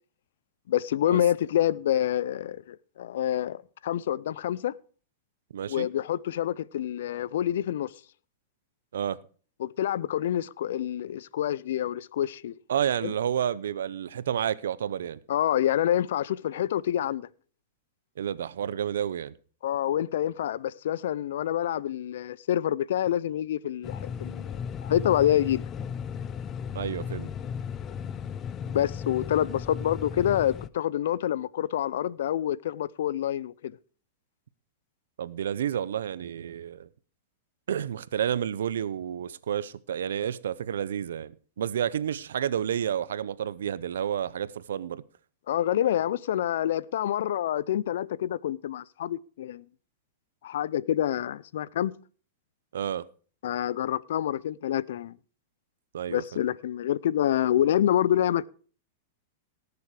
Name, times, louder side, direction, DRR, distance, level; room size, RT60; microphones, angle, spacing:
voice 1, 0.7-4.7 5.7-7.9 9.6-12.5 13.0-13.1 15.3-17.3 19.6-25.6 28.7-33.7 45.5-49.6 50.4-51.9 53.4-55.2 56.1-58.5, left 11 dB, 75° left, 0.5 m, -27 dB
voice 2, 5.5-5.9 8.9-9.2 12.7-15.2 18.2-19.3 26.7-27.3 35.2-36.9 37.7-45.0 52.7-53.0 55.9-56.2, right 9 dB, 90° right, 0.7 m, -30 dB
sound 1, 23.8-30.7, left 7 dB, 25° left, 0.5 m, -35 dB
18.0 x 7.0 x 4.8 m
supercardioid pair, 140°, 0 cm